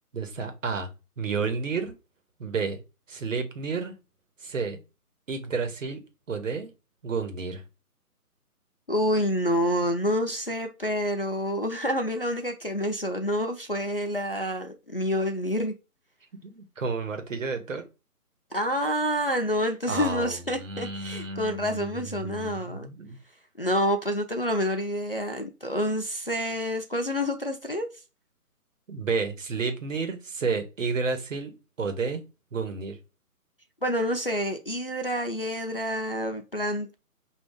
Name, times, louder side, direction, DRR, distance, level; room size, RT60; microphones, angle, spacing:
voice 1, 0.1-0.9 1.2-1.9 2.4-2.8 3.1-3.9 4.4-4.8 5.3-6.0 6.3-6.7 7.0-7.6 16.4-17.8 19.9-23.2 28.9-32.2 32.5-33.0, right 4 dB, 55° right, 1.2 m, -31 dB
voice 2, 8.9-15.7 18.5-22.9 23.6-27.9 33.8-36.9, equal, 40° left, 0.4 m, -28 dB
5.4 x 2.6 x 3.6 m
hypercardioid pair, 165°, 45 cm